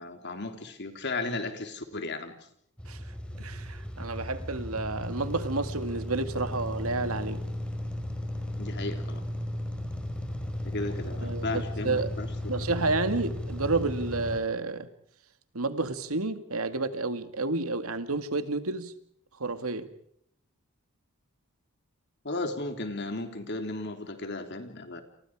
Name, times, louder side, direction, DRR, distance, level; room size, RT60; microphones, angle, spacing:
voice 1, 0.0-2.3 8.6-9.2 10.6-12.7 22.2-25.0, left 2 dB, 50° left, 3.6 m, -35 dB
sound 1, 2.8-14.4, left 1 dB, 5° left, 4.9 m, -35 dB
voice 2, 3.4-7.4 11.2-12.1 12.5-14.9 15.5-18.9 19.4-19.9, right 3 dB, 80° right, 2.2 m, -30 dB
30.0 x 28.5 x 4.9 m
head